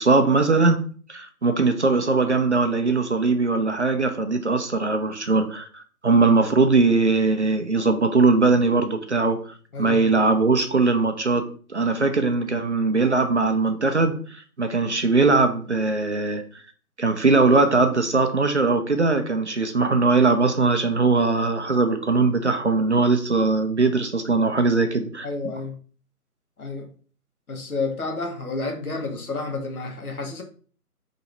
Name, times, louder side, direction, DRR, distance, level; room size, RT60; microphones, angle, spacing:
voice 1, 0.0-16.4 17.0-25.3, right 3 dB, 50° right, 0.5 m, -20 dB
voice 2, 9.7-10.1 25.2-25.8 26.6-26.9 27.5-30.4, left 3 dB, 65° left, 1.1 m, -30 dB
2.9 x 2.7 x 4.3 m
figure-of-eight pair, 160°, 46 cm